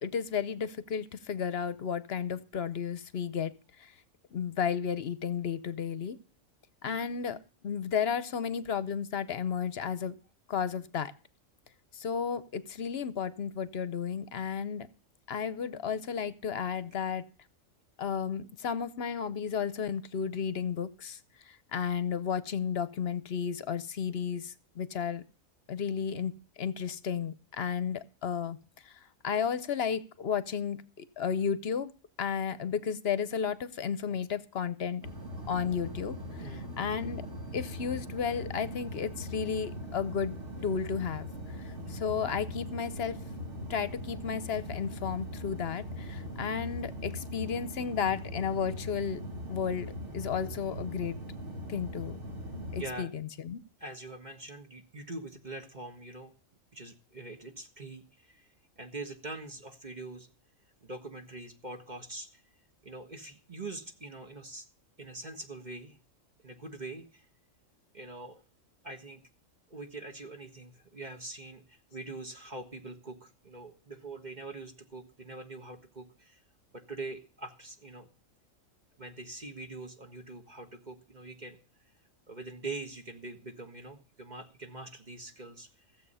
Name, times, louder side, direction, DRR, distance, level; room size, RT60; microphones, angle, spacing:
voice 1, 0.0-3.5 3.8-3.9 4.3-6.2 6.8-10.1 10.5-11.1 11.9-14.9 15.3-17.2 18.0-21.2 21.4-25.2 25.7-28.6 28.8-28.9 29.2-31.9 32.2-35.0 35.5-37.2 37.5-40.4 40.6-41.3 41.6-43.2 43.7-49.2 49.5-51.2 51.7-52.2 52.7-53.6, left 7 dB, 55° left, 15 dB, 0.9 m, -33 dB
sound 1, 35.0-52.9, left 1 dB, 60° right, 2.5 m, -40 dB
voice 2, 36.4-36.7 52.8-53.1 53.8-56.3 56.7-58.5 58.8-60.3 60.8-62.4 62.8-64.7 65.0-66.0 66.4-67.2 67.9-68.4 68.8-69.2 69.7-76.4 76.7-78.1 79.0-81.6 82.3-86.1, right 2 dB, 35° right, 5 dB, 1.6 m, -43 dB
15.5 x 7.7 x 5.5 m, 0.38 s
omnidirectional pair, 1.3 m